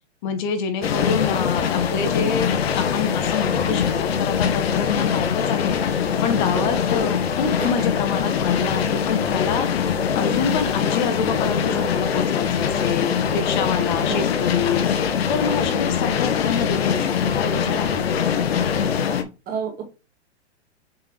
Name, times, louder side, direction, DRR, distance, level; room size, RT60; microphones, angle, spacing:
voice 1, 0.2-9.7 10.1-18.8, left 6 dB, 45° left, 8 dB, 1.5 m, -27 dB
sound 1, 0.8-19.2, left 7 dB, 60° left, 1.4 m, -22 dB
voice 2, 19.5-19.8, right 6 dB, 25° right, 5 dB, 1.7 m, -30 dB
7.6 x 4.0 x 3.2 m, 0.30 s
hypercardioid pair, 130°, 34 cm